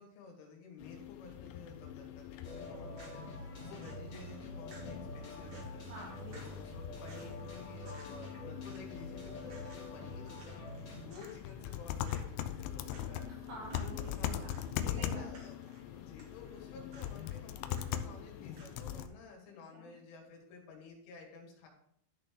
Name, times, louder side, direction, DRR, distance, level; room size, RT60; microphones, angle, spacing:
voice 1, 0.0-5.9 6.2-10.6 10.9-13.3 13.8-14.4 14.8-15.6 15.9-21.7, left 4 dB, 75° left, 0 dB, 4.5 m, -52 dB
sound 1, 0.8-19.1, left 10 dB, 90° left, 2.5 m, -42 dB
sound 2, 2.4-11.1, left 1 dB, 50° left, 1.5 m, -47 dB
sound 3, 2.7-18.9, right 2 dB, 60° right, 1.6 m, -60 dB
voice 2, 5.9-6.6 13.5-15.3 19.7-19.8, right 2 dB, 85° right, -5 dB, 6.9 m, -48 dB
13.0 x 6.7 x 3.8 m, 0.72 s
omnidirectional pair, 5.8 m